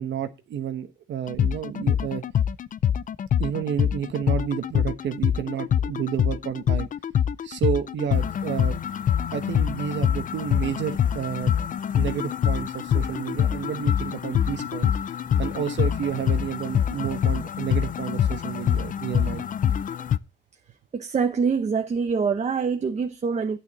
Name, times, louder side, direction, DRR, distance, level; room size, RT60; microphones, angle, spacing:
voice 1, 0.0-2.2 3.4-6.9 7.4-8.8 9.3-11.6 11.9-14.9 15.4-19.4, right 9 dB, 70° right, 1.1 m, -30 dB
sound 1, 1.3-20.2, left 9 dB, 40° left, 0.5 m, -25 dB
voice 2, 20.9-23.6, right 5 dB, 35° right, 0.9 m, -25 dB
9.1 x 8.9 x 4.0 m
cardioid pair, 90°, 20 cm